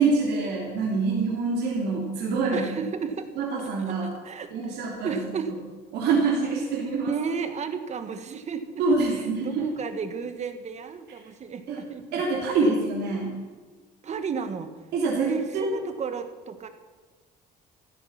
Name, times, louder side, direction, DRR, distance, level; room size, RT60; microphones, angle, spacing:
voice 1, 0.0-2.7 3.4-4.1 4.5-5.2 5.9-7.1 8.8-9.7 11.7-11.8 12.1-13.3 14.9-15.8, right 4 dB, 80° right, -3 dB, 3.4 m, -25 dB
voice 2, 2.5-3.3 3.8-4.7 5.0-5.5 7.1-8.8 9.2-12.2 12.6-12.7 14.0-14.8 15.2-16.7, right 6 dB, 40° right, 9 dB, 1.5 m, -33 dB
15.0 x 13.0 x 5.9 m, 1.4 s
cardioid pair, 110°, 17 cm